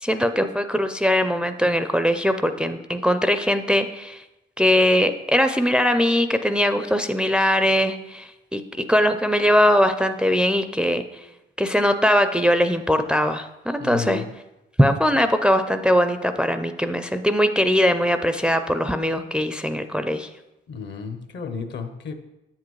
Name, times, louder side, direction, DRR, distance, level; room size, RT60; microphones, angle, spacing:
voice 1, 0.0-4.2 4.6-11.0 11.6-14.2 14.8-20.3, equal, 5° right, 8 dB, 0.4 m, -21 dB
voice 2, 13.8-14.3 20.7-22.1, left 5 dB, 60° left, 8 dB, 0.9 m, -32 dB
7.8 x 7.4 x 3.1 m, 0.97 s
cardioid pair, 90°, 20 cm